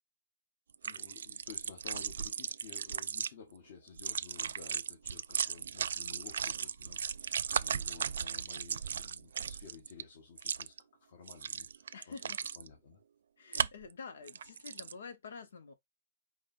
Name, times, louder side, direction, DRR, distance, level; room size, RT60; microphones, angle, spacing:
sound 1, 0.7-3.3 3.9-10.0 10.4-10.8 11.3-12.7 13.5-13.9 14.3-14.9, right 7 dB, 80° right, 0.3 m, -36 dB
voice 1, 0.8-13.0, left 6 dB, 55° left, 1.4 m, -53 dB
voice 2, 11.9-12.4 13.4-15.7, left 5 dB, 80° left, 0.9 m, -48 dB
4.9 x 2.2 x 4.2 m
hypercardioid pair, 160°, 0 cm